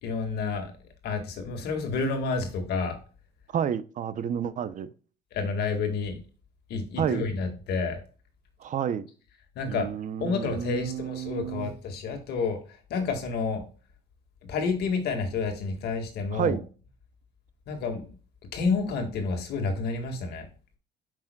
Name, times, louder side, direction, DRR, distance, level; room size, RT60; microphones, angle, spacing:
voice 1, 0.0-0.7 1.0-3.0 5.3-6.2 6.7-8.0 9.6-9.9 10.2-12.6 12.9-13.6 14.5-16.6 17.7-18.1 18.5-20.5, left 4 dB, 75° left, 5 dB, 1.9 m, -29 dB
voice 2, 3.5-4.9 7.0-7.2 8.6-9.1 9.7-11.7 16.3-16.6, right 9 dB, 50° right, 14 dB, 0.7 m, -30 dB
8.6 x 6.1 x 2.3 m, 0.37 s
cardioid pair, 110°, 17 cm